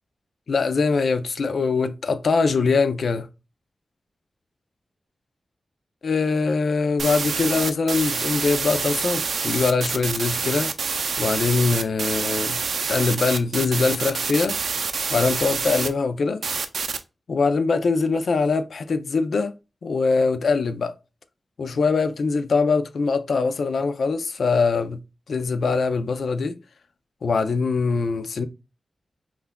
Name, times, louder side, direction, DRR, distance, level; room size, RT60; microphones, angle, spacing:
voice 1, 0.5-3.3 6.0-10.7 11.2-12.6 12.9-14.6 15.1-16.4 17.3-19.5 19.8-21.0 21.6-25.0 25.3-26.5 27.2-28.5, left 4 dB, 75° left, 0.4 m, -22 dB
sound 1, 7.0-15.9 16.4-17.0, right 5 dB, 80° right, 0.4 m, -27 dB
5.5 x 2.3 x 2.2 m
wide cardioid pair, 115°, 0 cm